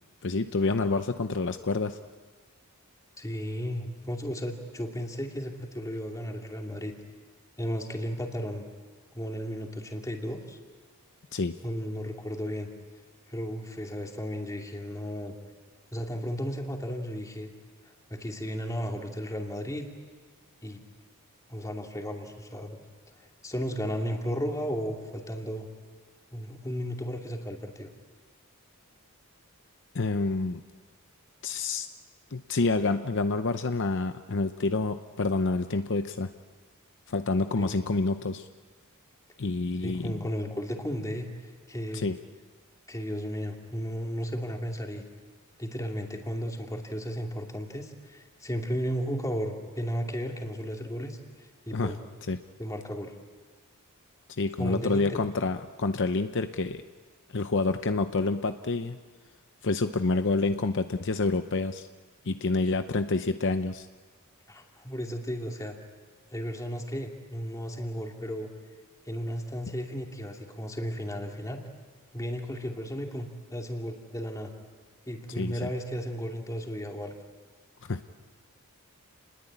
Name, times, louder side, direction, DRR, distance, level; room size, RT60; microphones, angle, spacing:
voice 1, 0.2-2.0 11.3-11.6 29.9-30.6 31.4-31.9 32.3-36.3 37.1-38.5 39.4-40.3 41.9-42.2 51.7-51.9 52.3-52.4 54.4-56.8 57.3-59.0 59.6-61.9 62.2-63.9 75.4-75.6 77.9-78.0, left 3 dB, 55° left, 9 dB, 0.8 m, -28 dB
voice 2, 3.2-6.9 7.6-8.6 9.1-10.6 11.6-12.7 13.3-15.3 15.9-17.5 18.1-19.9 20.6-20.8 21.5-22.8 23.1-25.7 26.3-27.9 37.6-37.9 39.8-41.3 41.7-42.1 42.9-45.0 45.6-52.0 52.6-53.1 54.6-55.2 64.5-65.8 66.3-68.5 69.0-71.7 72.1-74.5 75.1-77.1, equal, 15° left, 2 dB, 2.7 m, -34 dB
29.5 x 21.0 x 8.8 m, 1.5 s
head